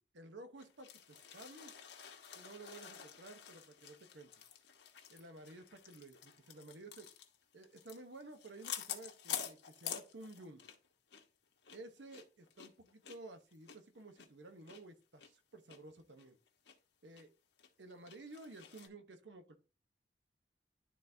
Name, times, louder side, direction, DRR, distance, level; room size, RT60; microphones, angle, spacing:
voice 1, 0.1-1.9 2.3-4.3 5.1-7.1 7.5-10.6 11.7-16.4 17.0-17.3 17.8-19.6, right 2 dB, 90° right, 7 dB, 1.0 m, -53 dB
sound 1, 0.6-10.9 11.1-11.3 11.6-14.8 15.2-15.3 15.7-15.8 16.2-16.8 17.2-17.3 17.6-18.9, left 9 dB, 85° left, 1.2 m, -48 dB
11.0 x 4.0 x 2.7 m, 0.34 s
head